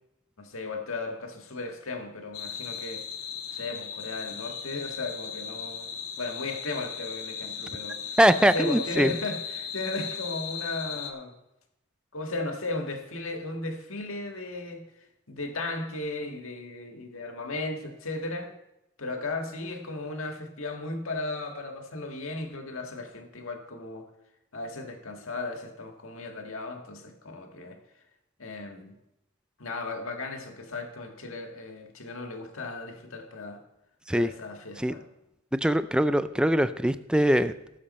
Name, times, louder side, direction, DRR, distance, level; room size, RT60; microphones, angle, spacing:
voice 1, 0.4-3.1 3.5-11.4 12.1-18.5 19.0-24.1 24.5-27.8 28.4-29.0 29.6-33.6 34.1-35.0, left 2 dB, 65° left, 4 dB, 1.8 m, -36 dB
sound 1, 2.3-11.1, left 7 dB, 85° left, 1.3 m, -37 dB
voice 2, 8.2-9.1 34.1-34.3 34.8-34.9 35.5-37.5, equal, 5° right, 12 dB, 0.4 m, -22 dB
18.0 x 7.4 x 4.3 m, 0.89 s
head